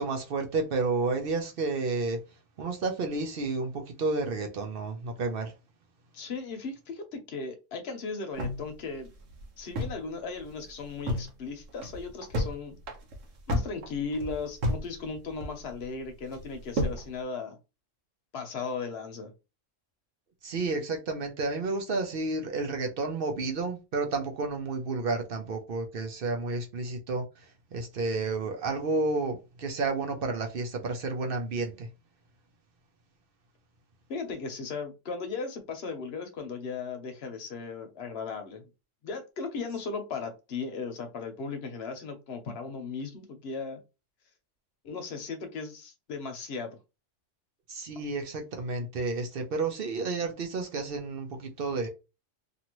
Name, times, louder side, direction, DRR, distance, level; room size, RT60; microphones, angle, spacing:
voice 1, 0.0-2.2 2.6-5.5 20.4-27.2 27.7-31.9 47.7-51.9, right 3 dB, 55° right, 0.7 m, -31 dB
voice 2, 6.1-9.1 9.6-12.8 13.5-17.6 18.3-19.3 34.1-38.7 39.0-43.8 44.8-46.8, left 4 dB, 60° left, 1.0 m, -37 dB
sound 1, 8.4-10.1 10.4-10.5 10.8-11.3 11.7-12.5 12.8-14.9 15.1-15.8 16.3-17.0, left 1 dB, 90° right, 1.2 m, -31 dB
2.7 x 2.5 x 2.9 m
omnidirectional pair, 1.3 m